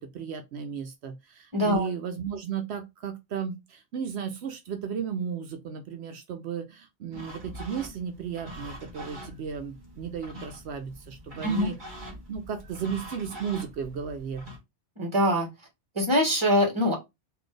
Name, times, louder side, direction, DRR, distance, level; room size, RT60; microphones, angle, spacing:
voice 1, 0.0-11.8 12.3-14.5, right 7 dB, 80° right, 0.9 m, -34 dB
voice 2, 1.5-1.9 11.4-11.7 15.0-15.5 15.9-16.9, equal, 25° right, 1.5 m, -23 dB
sound 1, 7.1-14.6, equal, 50° right, 1.5 m, -44 dB
4.1 x 2.6 x 3.2 m
omnidirectional pair, 1.1 m